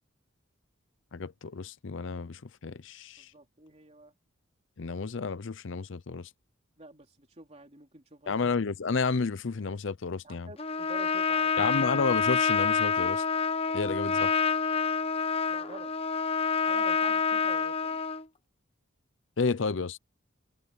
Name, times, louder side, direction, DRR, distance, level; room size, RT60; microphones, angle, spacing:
voice 1, 1.1-3.3 4.8-6.3 8.3-10.5 11.6-13.2 13.7-14.3 19.4-20.0, left 4 dB, 65° left, 0.6 m, -31 dB
voice 2, 3.2-4.2 6.8-8.4 10.2-11.6 13.7-14.0 15.5-15.9 16.7-18.0, right 2 dB, 30° right, 3.5 m, -48 dB
Trumpet, 10.6-18.2, left 5 dB, 30° left, 0.8 m, -27 dB
head